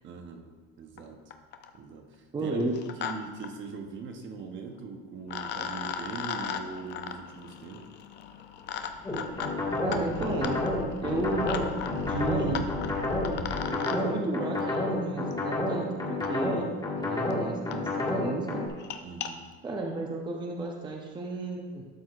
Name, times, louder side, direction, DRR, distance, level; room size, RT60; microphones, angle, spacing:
voice 1, 0.0-0.5 0.8-1.2 1.7-2.7 3.0-7.8 19.0-19.5, right 4 dB, 40° right, 4 dB, 0.9 m, -41 dB
sound 1, 1.0-1.1 1.3-1.8 2.6-3.1 3.4-3.5 4.8-4.9 5.3-14.0 15.3-15.4 16.2-16.3 17.0-17.1 17.3-17.4 17.7-17.8 18.1-18.3 18.7-19.3, left 7 dB, 40° left, 0.5 m, -38 dB
voice 2, 2.3-2.7 9.8-10.6 11.0-11.4 11.9-12.7 13.7-16.7 17.0-18.6 19.6-21.8, right 2 dB, 15° right, 0 dB, 0.7 m, -33 dB
sound 2, 8.6-13.7, left 4 dB, 80° left, 1.0 m, -39 dB
sound 3, 9.0-18.7, left 2 dB, 15° left, 1.7 m, -30 dB
12.5 x 6.1 x 2.5 m, 1.4 s
cardioid pair, 145°, 30 cm